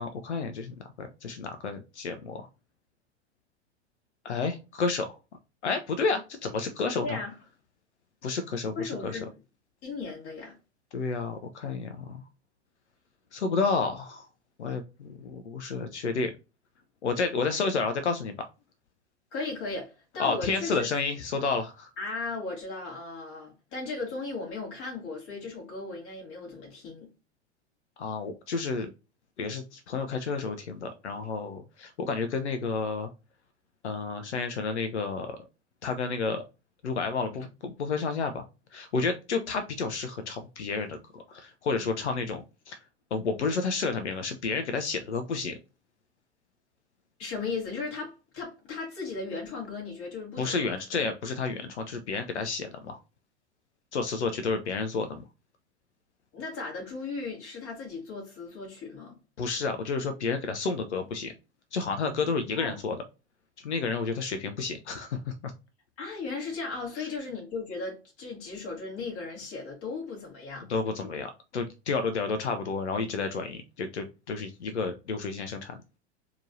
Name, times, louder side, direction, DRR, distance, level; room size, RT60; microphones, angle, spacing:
voice 1, 0.0-2.5 4.2-5.2 5.6-7.2 8.2-9.2 10.9-12.2 13.3-14.3 14.6-16.3 17.0-18.5 20.2-21.9 28.0-28.9 29.4-33.1 33.8-35.4 35.8-36.4 36.8-42.8 43.1-45.6 50.4-53.0 53.9-55.2 59.4-61.3 61.7-63.0 63.6-65.5 67.0-67.1 70.7-75.8, left 4 dB, 85° left, 0.6 m, -31 dB
voice 2, 7.0-7.3 8.8-9.3 9.8-10.5 19.3-20.9 22.0-27.1 42.2-42.3 47.2-50.8 56.3-59.1 62.5-62.8 66.0-70.7, left 3 dB, 40° left, 2.4 m, -36 dB
4.3 x 2.9 x 2.6 m
hypercardioid pair, 95°, 33 cm